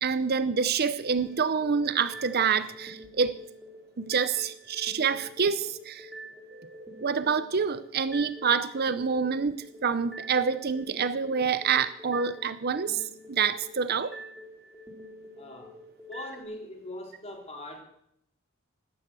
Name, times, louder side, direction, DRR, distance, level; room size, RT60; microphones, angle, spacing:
voice 1, 0.0-3.4 4.0-6.1 6.5-14.1, right 6 dB, 50° right, 13 dB, 0.7 m, -27 dB
sound 1, 1.0-16.4, right 1 dB, ahead, 2.9 m, -47 dB
voice 2, 15.3-15.7 16.1-17.8, left 1 dB, 30° left, 2 dB, 3.4 m, -41 dB
13.0 x 12.0 x 7.5 m, 0.75 s
head